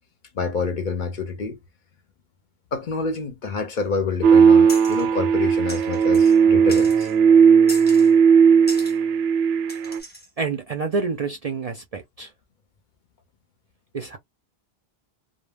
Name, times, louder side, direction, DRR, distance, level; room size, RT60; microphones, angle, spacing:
voice 1, 0.3-1.6 2.7-7.1, left 4 dB, 55° left, 0.7 m, -27 dB
sound 1, 4.2-10.0, right 6 dB, 80° right, 0.8 m, -16 dB
sound 2, 4.7-5.1 5.7-6.4 6.7-7.2 7.7-8.1 8.7-9.0 9.7-10.3, left 1 dB, 10° left, 0.7 m, -38 dB
voice 2, 10.4-12.3 13.9-14.2, right 4 dB, 55° right, 0.4 m, -28 dB
2.1 x 2.1 x 3.2 m
omnidirectional pair, 1.0 m